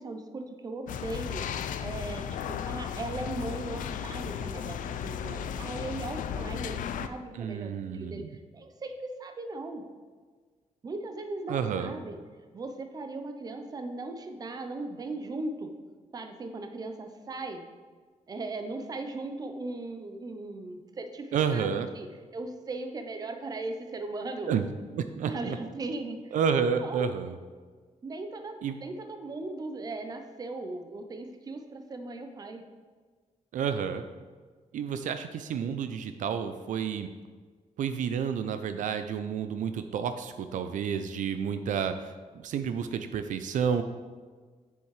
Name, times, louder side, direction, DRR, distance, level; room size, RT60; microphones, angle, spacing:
voice 1, 0.0-1.5 1.8-9.8 10.8-12.2 12.5-15.7 16.1-17.6 18.3-21.7 21.9-24.5 25.3-26.4 26.8-27.1 28.0-32.6, right 2 dB, 30° right, 7 dB, 0.6 m, -38 dB
sound 1, 0.9-7.1, left 8 dB, 90° left, 0.4 m, -35 dB
voice 2, 7.3-8.2 11.5-11.9 21.3-21.9 24.5-24.7 24.9-25.6 26.3-27.4 28.6-28.7 33.5-34.1 34.7-37.1 37.8-43.8, right 7 dB, 75° right, 9 dB, 0.4 m, -30 dB
7.1 x 6.9 x 3.2 m, 1.5 s
wide cardioid pair, 160°, 13 cm